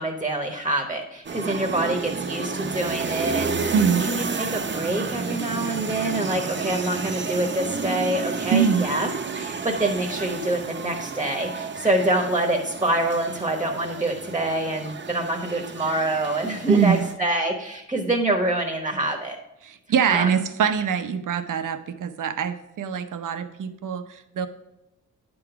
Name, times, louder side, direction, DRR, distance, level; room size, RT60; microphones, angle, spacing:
voice 1, 0.0-3.7 4.0-19.4 20.1-20.3, right 1 dB, 15° right, 3 dB, 1.0 m, -26 dB
sound 1, 1.2-17.1, right 4 dB, 35° right, 0.7 m, -31 dB
voice 2, 3.7-4.0 8.5-8.8 16.7-17.0 19.6-24.5, right 7 dB, 75° right, 10 dB, 0.7 m, -23 dB
9.5 x 3.9 x 5.7 m, 0.91 s
cardioid pair, 95°, 31 cm